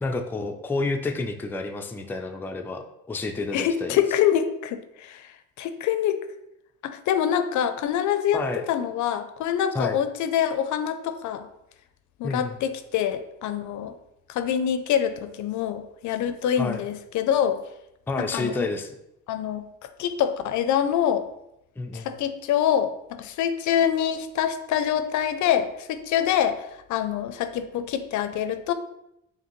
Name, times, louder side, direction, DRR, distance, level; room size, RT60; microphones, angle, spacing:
voice 1, 0.0-4.0 8.3-8.6 9.7-10.0 12.2-12.6 16.6-16.8 18.1-18.9 21.8-22.1, left 3 dB, 5° left, 4 dB, 0.3 m, -29 dB
voice 2, 3.5-5.3 5.6-6.2 6.8-11.4 12.2-13.9 14.3-17.6 18.2-18.7 19.3-19.7 20.0-21.2 21.9-28.7, left 9 dB, 75° left, 10 dB, 0.4 m, -25 dB
5.0 x 2.7 x 3.0 m, 0.83 s
cardioid pair, 90°, 30 cm